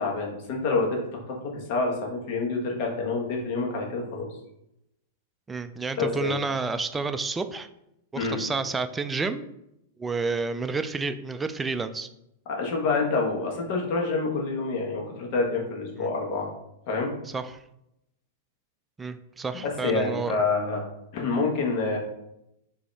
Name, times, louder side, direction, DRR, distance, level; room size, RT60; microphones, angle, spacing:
voice 1, 0.0-4.3 6.0-6.4 8.2-8.4 12.5-16.5 16.9-17.1 19.6-20.8 21.1-22.0, left 3 dB, 50° left, 0 dB, 1.2 m, -27 dB
voice 2, 5.5-7.7 8.1-9.5 10.0-12.1 17.3-17.6 19.0-20.4, right 4 dB, 15° right, 10 dB, 0.3 m, -30 dB
5.0 x 2.8 x 3.3 m, 0.83 s
hypercardioid pair, 110°, 0 cm